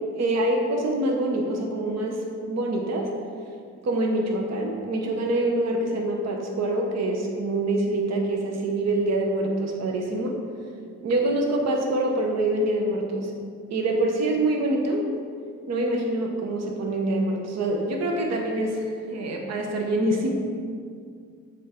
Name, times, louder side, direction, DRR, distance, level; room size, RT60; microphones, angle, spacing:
voice 1, 0.2-3.1 3.8-10.4 11.0-13.3 13.7-15.1 15.7-20.3, right 1 dB, 60° right, 1 dB, 0.9 m, -25 dB
7.1 x 3.6 x 4.4 m, 2.2 s
cardioid pair, 90°, 30 cm